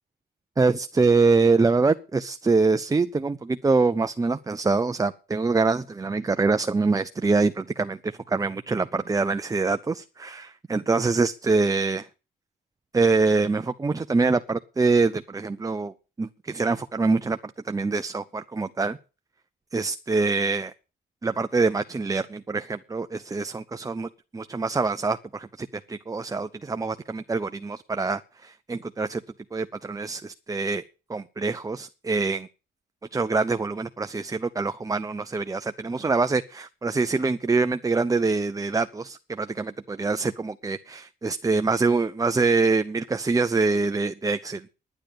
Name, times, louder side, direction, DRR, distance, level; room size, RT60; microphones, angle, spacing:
voice 1, 0.6-12.1 12.9-19.0 19.7-20.7 21.2-24.1 24.3-29.2 29.5-30.8 31.1-32.5 33.1-44.7, right 4 dB, 15° right, 0.6 m, -25 dB
10.5 x 9.8 x 6.8 m
cardioid pair, 90°, 20 cm